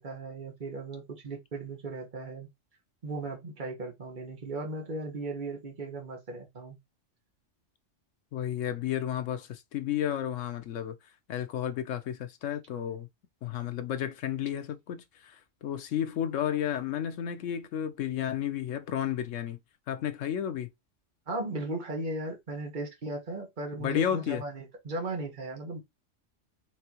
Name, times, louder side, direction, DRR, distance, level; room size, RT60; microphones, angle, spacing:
voice 1, 0.0-2.5 3.0-6.8 21.3-25.8, right 2 dB, 40° right, 1.6 m, -37 dB
voice 2, 8.3-11.0 11.3-13.1 13.4-19.6 19.9-20.7 23.8-24.4, left 10 dB, 90° left, 1.1 m, -32 dB
4.7 x 3.3 x 3.0 m
omnidirectional pair, 1.3 m